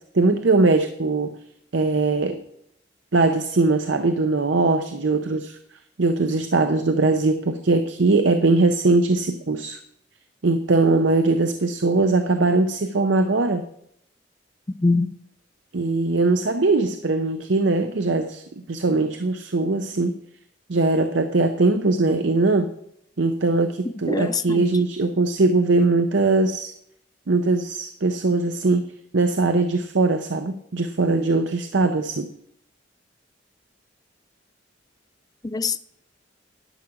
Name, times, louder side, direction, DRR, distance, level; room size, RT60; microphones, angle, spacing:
voice 1, 0.1-1.4 1.7-2.4 3.1-5.6 6.0-9.8 10.4-13.6 15.7-20.2 20.7-22.7 23.2-26.7 27.3-32.3, right 3 dB, 75° right, 0.7 m, -21 dB
voice 2, 24.1-24.7 35.4-35.8, left 3 dB, 20° left, 0.4 m, -23 dB
11.0 x 5.9 x 7.8 m
head